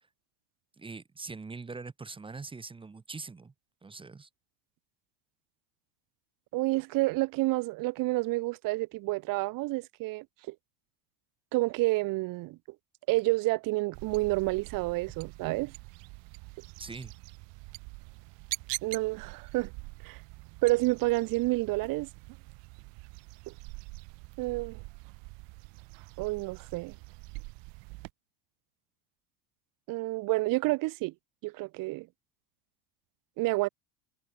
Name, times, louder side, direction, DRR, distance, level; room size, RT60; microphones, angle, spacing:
voice 1, 0.8-3.5 3.8-4.3 16.8-17.1, right 4 dB, 10° right, 1.1 m, -42 dB
voice 2, 6.5-10.5 11.5-12.6 13.1-15.7 18.8-19.7 20.0-20.2 20.6-22.1 23.5-23.6 24.4-24.8 26.2-26.9 29.9-31.1 31.4-32.1 33.4-33.7, right 21 dB, 45° right, 0.9 m, -29 dB
sound 1, 13.9-28.1, right 30 dB, 60° right, 3.2 m, -45 dB
supercardioid pair, 140°, 49 cm